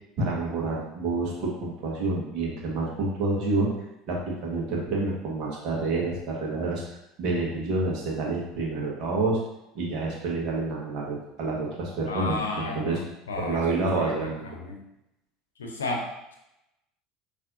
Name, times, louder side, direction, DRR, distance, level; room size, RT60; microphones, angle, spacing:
voice 1, 0.2-3.7 4.1-6.8 7.2-9.4 9.7-13.0 13.4-14.5, right 3 dB, 55° right, -2 dB, 1.4 m, -28 dB
voice 2, 12.1-13.6 13.9-14.8 15.6-16.3, left 3 dB, 90° left, 2 dB, 0.7 m, -33 dB
5.7 x 3.2 x 2.6 m, 0.88 s
hypercardioid pair, 80°, 0 cm